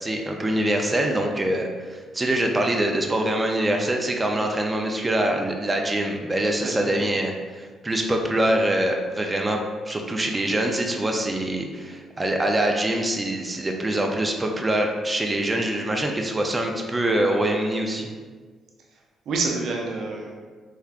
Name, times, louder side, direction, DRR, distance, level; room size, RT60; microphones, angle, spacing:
voice 1, 0.0-9.6 9.9-18.1, right 1 dB, 20° right, 2 dB, 0.4 m, -24 dB
voice 2, 6.6-7.0 18.9-19.0 19.3-20.4, right 3 dB, 70° right, 0 dB, 0.6 m, -28 dB
3.4 x 3.3 x 2.4 m, 1.5 s
cardioid pair, 90°, 0 cm